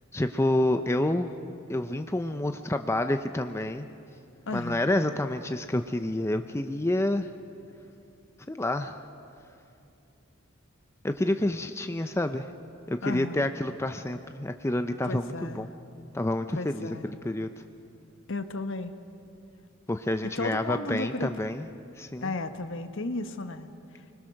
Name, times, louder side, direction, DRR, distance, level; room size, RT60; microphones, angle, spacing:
voice 1, 0.1-1.3 1.7-3.9 4.5-7.3 8.5-9.0 11.0-12.5 12.9-15.7 16.1-17.5 19.9-21.7 22.0-22.3, left 1 dB, 15° left, 7 dB, 0.5 m, -28 dB
voice 2, 4.5-4.9 13.0-13.5 15.0-15.7 16.5-17.1 18.3-18.9 20.2-21.3 22.2-23.7, left 2 dB, 65° left, 8 dB, 1.2 m, -34 dB
29.0 x 21.0 x 6.4 m, 2.7 s
head